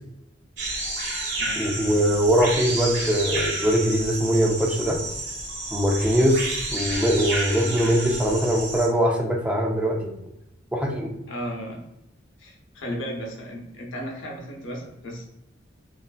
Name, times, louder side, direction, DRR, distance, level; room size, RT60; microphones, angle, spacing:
sound 1, 0.6-8.9, right 2 dB, 70° right, 1.2 m, -30 dB
voice 1, 1.6-5.0 5.7-10.2 10.7-11.1, equal, 5° right, 0 dB, 0.4 m, -22 dB
voice 2, 11.3-11.8 12.4-15.2, equal, 75° left, 0 dB, 0.8 m, -34 dB
3.2 x 2.5 x 2.2 m, 0.86 s
head